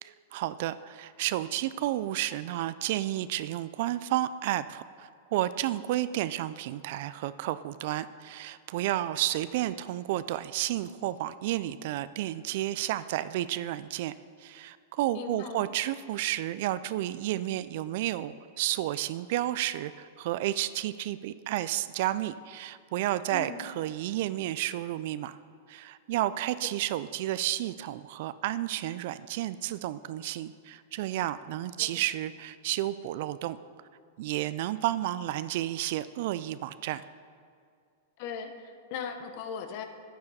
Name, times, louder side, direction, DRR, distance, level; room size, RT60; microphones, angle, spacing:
voice 1, 0.0-14.1 14.4-25.4 25.7-33.6 34.2-37.0, right 14 dB, 60° right, 15 dB, 0.3 m, -31 dB
voice 2, 15.1-15.6 23.3-23.7 38.2-39.9, left 7 dB, 55° left, 7 dB, 0.9 m, -38 dB
9.5 x 9.5 x 4.2 m, 2.2 s
hypercardioid pair, 120°, 0 cm